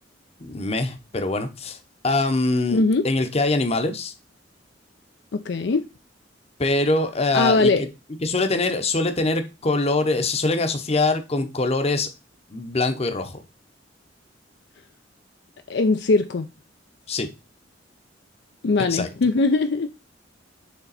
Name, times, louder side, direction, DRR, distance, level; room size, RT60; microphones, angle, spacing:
voice 1, 0.4-1.8 2.0-4.1 6.6-7.9 8.2-12.1 12.5-13.4 17.1-17.3 18.9-19.1, left 2 dB, 35° left, 0.8 m, -23 dB
voice 2, 2.7-3.1 5.3-5.9 7.3-7.8 15.7-16.5 18.6-19.9, left 3 dB, 65° left, 0.5 m, -20 dB
6.8 x 3.4 x 4.0 m
head